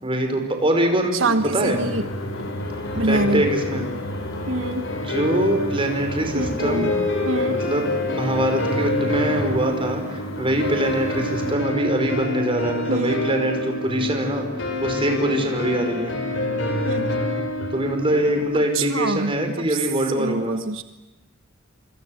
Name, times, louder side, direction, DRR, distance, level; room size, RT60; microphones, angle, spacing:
voice 1, 0.0-1.8 3.1-3.9 5.0-6.9 7.5-16.1 17.7-20.6, right 1 dB, 25° right, 4 dB, 5.5 m, -23 dB
voice 2, 1.1-2.0 2.9-3.4 4.5-4.9 5.2-5.3 6.3-6.9 7.3-7.6 8.7-8.9 12.9-13.2 16.8-17.2 18.7-19.3 19.7-19.8 20.1-20.8, right 2 dB, 80° right, 9 dB, 1.3 m, -25 dB
sound 1, 1.4-11.5, left 1 dB, 85° left, 4.6 m, -35 dB
sound 2, 1.6-18.4, left 1 dB, 65° left, 7.8 m, -27 dB
27.5 x 26.0 x 8.0 m, 0.99 s
head